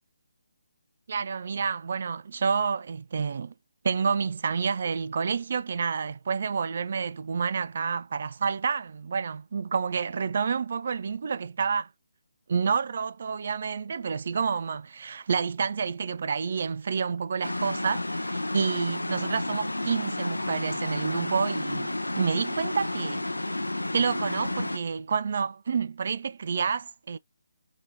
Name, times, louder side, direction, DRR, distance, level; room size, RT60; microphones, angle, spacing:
voice 1, 1.1-3.5 3.8-11.9 12.5-23.3 23.9-27.2, right 6 dB, 55° right, 0.5 m, -29 dB
sound 1, 17.4-24.8, left 2 dB, 90° left, 0.7 m, -31 dB
4.9 x 3.1 x 2.8 m
figure-of-eight pair, 145°, 0 cm